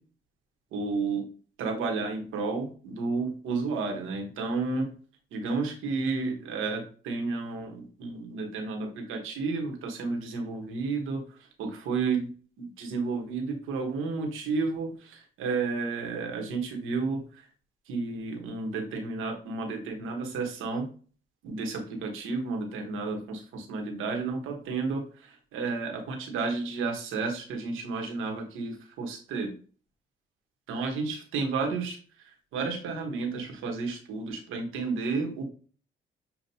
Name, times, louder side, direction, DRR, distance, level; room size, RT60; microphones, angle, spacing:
voice 1, 0.7-1.3 1.6-4.9 5.3-12.3 12.6-17.5 17.9-20.9 21.4-29.5 30.7-35.5, right 4 dB, 90° right, 2 dB, 1.3 m, -32 dB
7.0 x 2.5 x 2.8 m, 0.40 s
cardioid pair, 90°, 20 cm